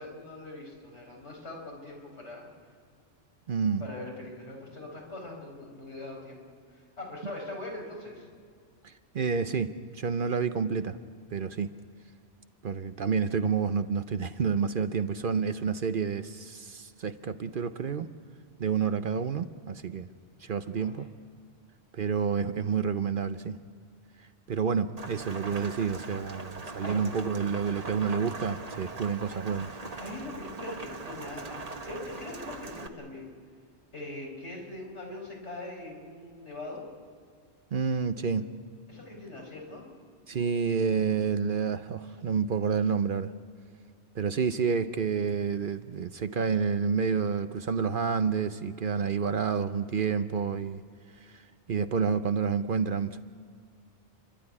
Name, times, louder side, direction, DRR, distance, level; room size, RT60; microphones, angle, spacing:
voice 1, 0.0-2.5 3.8-6.4 6.7-8.2 20.7-21.1 26.8-27.0 30.0-33.3 33.9-36.8 38.9-39.8, left 2 dB, 75° left, -1 dB, 4.9 m, -42 dB
voice 2, 3.5-3.8 8.8-11.0 11.3-11.7 12.6-18.1 18.6-20.1 20.4-21.1 21.9-23.6 24.5-29.7 37.7-38.5 40.3-43.3 44.1-50.8 51.1-53.2, right 6 dB, 55° right, 11 dB, 0.8 m, -29 dB
Rain, 25.0-32.9, right 3 dB, 35° right, 1.2 m, -41 dB
30.0 x 12.0 x 9.8 m, 2.1 s
omnidirectional pair, 1.2 m